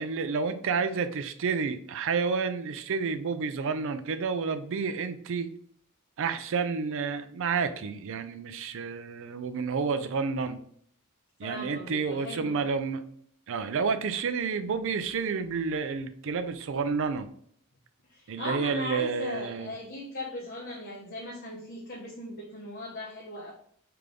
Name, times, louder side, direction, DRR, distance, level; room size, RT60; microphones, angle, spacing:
voice 1, 0.0-5.5 6.2-10.6 11.4-13.0 13.5-17.3 18.3-19.7, right 5 dB, 65° right, 9 dB, 0.4 m, -30 dB
voice 2, 11.4-12.6 18.1-23.5, left 1 dB, 50° left, -2 dB, 0.8 m, -38 dB
3.4 x 3.4 x 3.7 m, 0.62 s
head